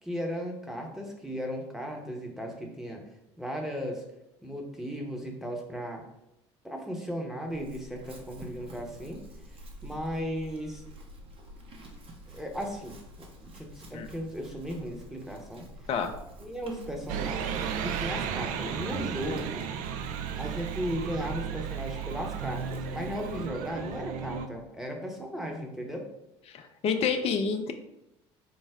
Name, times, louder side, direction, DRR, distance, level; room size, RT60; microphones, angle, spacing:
voice 1, 0.0-3.0 3.4-4.0 4.4-6.0 6.6-9.2 9.8-10.8 12.3-13.0 13.4-15.7 16.4-19.7 20.3-26.1, equal, 5° right, 1 dB, 0.9 m, -36 dB
Chewing mastication / Livestock farm animals working animals, 7.5-24.0, right 1 dB, 40° right, 0.9 m, -48 dB
sound 1, 17.1-24.5, right 7 dB, 55° right, 0.4 m, -34 dB
voice 2, 26.5-27.7, left 6 dB, 45° left, 5 dB, 0.5 m, -28 dB
4.6 x 2.0 x 3.5 m, 0.86 s
hypercardioid pair, 65°, 15 cm